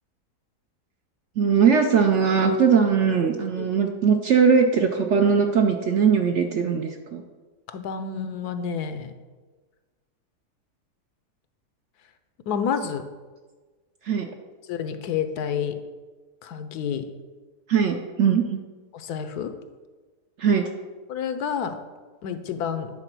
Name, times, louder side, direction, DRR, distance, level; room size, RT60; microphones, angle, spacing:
voice 1, 1.4-7.2 14.1-14.3 17.7-18.6 20.4-20.7, right 6 dB, 65° right, 4 dB, 0.7 m, -20 dB
voice 2, 7.7-9.1 12.5-13.1 14.7-15.8 16.4-17.0 18.9-19.5 21.1-21.8 22.2-22.9, left 7 dB, 75° left, 9 dB, 1.2 m, -29 dB
9.9 x 4.0 x 5.9 m, 1.3 s
omnidirectional pair, 1.7 m